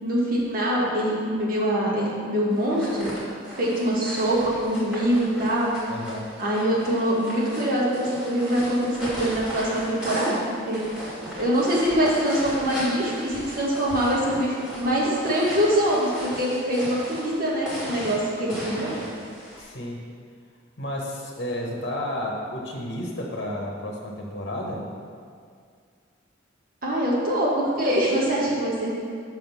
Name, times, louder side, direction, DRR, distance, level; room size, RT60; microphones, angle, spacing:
voice 1, 0.0-3.1 3.6-5.7 6.4-10.8 11.4-18.9 26.8-28.9, equal, 50° right, -5 dB, 1.3 m, -24 dB
sound 1, 2.6-19.6, equal, 5° right, 1.8 m, -36 dB
voice 2, 5.9-6.3 19.6-20.0 20.8-24.9, left 1 dB, 60° left, -1 dB, 1.0 m, -32 dB
6.0 x 3.6 x 6.0 m, 2.2 s
head